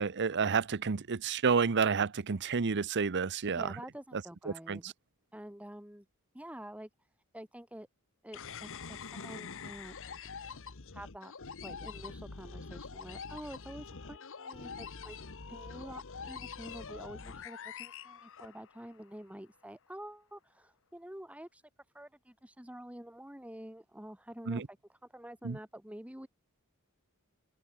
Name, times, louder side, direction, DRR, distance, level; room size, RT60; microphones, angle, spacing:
voice 1, 0.0-3.7 4.5-4.9 24.5-24.7 25.4-25.6, right 5 dB, 50° right, 0.7 m, -30 dB
voice 2, 3.5-4.9 5.3-6.1 6.3-7.1 7.3-7.9 8.2-10.0 10.9-11.3 11.6-21.6 21.9-26.3, right 1 dB, 5° right, 2.2 m, -48 dB
sound 1, 8.3-19.0, left 5 dB, 60° left, 1.2 m, -45 dB
open air
head